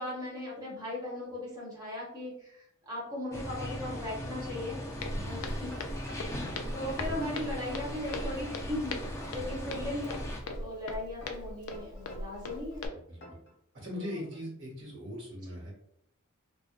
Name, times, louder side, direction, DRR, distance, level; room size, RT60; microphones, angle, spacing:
voice 1, 0.0-4.8 5.2-5.8 6.1-8.9 9.3-10.2 10.6-12.8, left 1 dB, 20° right, -5 dB, 0.7 m, -38 dB
sound 1, 3.3-10.4, equal, 15° left, 0.4 m, -39 dB
Walk footsteps, 5.0-12.9, left 2 dB, 90° left, 0.4 m, -39 dB
voice 2, 5.0-5.4 6.9-7.2 9.3-9.6 12.9-13.2 13.7-15.7, equal, 60° right, -3 dB, 1.0 m, -41 dB
sound 2, 5.7-6.8 7.2-8.8 9.2-10.8 11.2-12.8 13.2-13.5, left 1 dB, 60° left, 0.9 m, -49 dB
2.5 x 2.2 x 2.4 m, 0.72 s
head